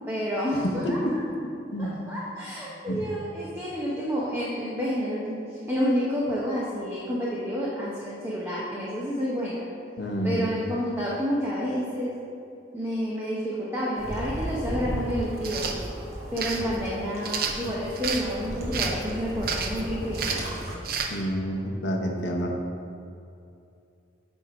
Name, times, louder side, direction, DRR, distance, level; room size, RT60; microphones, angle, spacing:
voice 1, 0.1-1.0 1.8-5.4 5.7-9.7 10.2-12.1 12.7-15.7 16.3-20.4, equal, 15° right, -7 dB, 0.9 m, -29 dB
voice 2, 0.6-1.1 1.4-2.0 2.9-3.0 10.0-10.5 21.1-22.5, equal, 75° left, 1 dB, 1.0 m, -28 dB
sound 1, 14.0-20.8, equal, 40° right, 1.2 m, -35 dB
sound 2, 15.4-15.8 16.4-16.6 17.2-18.2 18.7-19.0 19.4-19.8 20.1-20.5 20.8-21.1, right 6 dB, 55° right, 0.6 m, -30 dB
9.1 x 3.7 x 4.8 m, 2.6 s
head